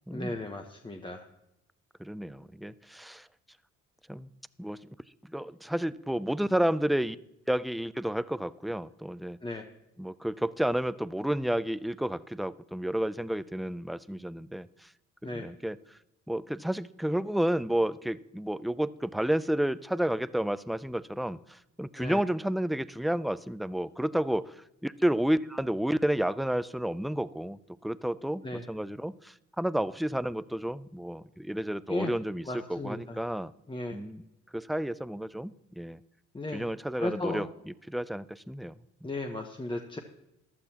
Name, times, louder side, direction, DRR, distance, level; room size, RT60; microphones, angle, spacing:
voice 1, 0.1-1.3 9.4-9.6 15.2-15.4 22.0-22.2 28.4-28.6 31.9-32.1 32.5-33.2 33.7-34.0 36.3-36.6 37.0-37.5 39.0-40.0, left 2 dB, 15° left, 3 dB, 1.0 m, -35 dB
voice 2, 2.0-3.3 4.1-4.3 4.6-4.8 5.3-7.2 7.5-9.4 10.0-14.9 15.3-15.8 16.3-24.6 24.8-28.4 28.7-32.4 32.7-33.5 33.9-34.2 34.5-36.0 36.5-37.5 37.9-38.7, right 1 dB, ahead, 17 dB, 0.3 m, -31 dB
15.0 x 11.5 x 2.9 m, 0.87 s
cardioid pair, 90°, 30 cm